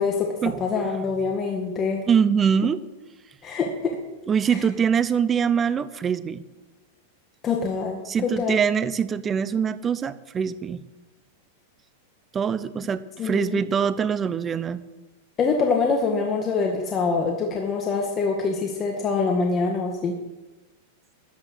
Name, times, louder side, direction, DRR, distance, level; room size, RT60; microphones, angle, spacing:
voice 1, 0.6-2.0 3.4-4.0 4.5-4.6 7.4-8.6 13.2-13.7 15.4-20.2, left 4 dB, 25° left, 1 dB, 1.8 m, -25 dB
voice 2, 2.1-2.8 4.3-6.5 8.1-10.8 12.3-14.8, right 7 dB, 20° right, 16 dB, 0.7 m, -23 dB
14.0 x 11.0 x 6.4 m, 1.1 s
supercardioid pair, 140°, 0 cm